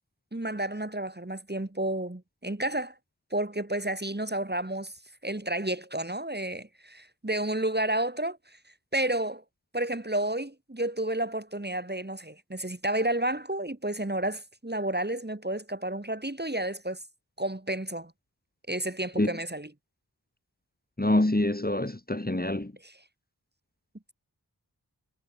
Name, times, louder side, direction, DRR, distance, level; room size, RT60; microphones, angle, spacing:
voice 1, 0.3-2.9 3.3-4.9 5.2-8.4 8.9-9.4 9.7-17.0 17.4-18.1 18.7-19.7 22.8-22.9, right 1 dB, 25° right, 2.8 m, -31 dB
voice 2, 21.0-22.7, left 1 dB, 20° left, 2.3 m, -26 dB
wide cardioid pair, 50°, 41 cm